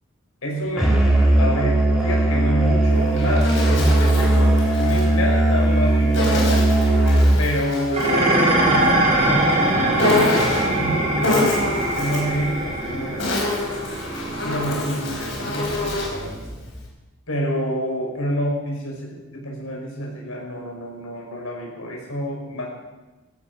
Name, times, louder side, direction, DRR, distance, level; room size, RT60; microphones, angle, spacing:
voice 1, 0.4-1.0 1.4-6.7 7.4-13.9 14.4-16.4 17.3-22.7, equal, 85° left, -1 dB, 5.7 m, -28 dB
Musical instrument, 0.8-7.6, right 1 dB, 5° right, 3.9 m, -18 dB
Insect, 2.9-5.1 6.1-8.2 10.0-10.8 11.2-12.4 13.0-16.2, left 2 dB, 60° left, 5.1 m, -26 dB
Dishes pots and pans, 7.9-16.7, right 1 dB, 30° right, 4.9 m, -23 dB
16.0 x 16.0 x 5.5 m, 1.1 s
head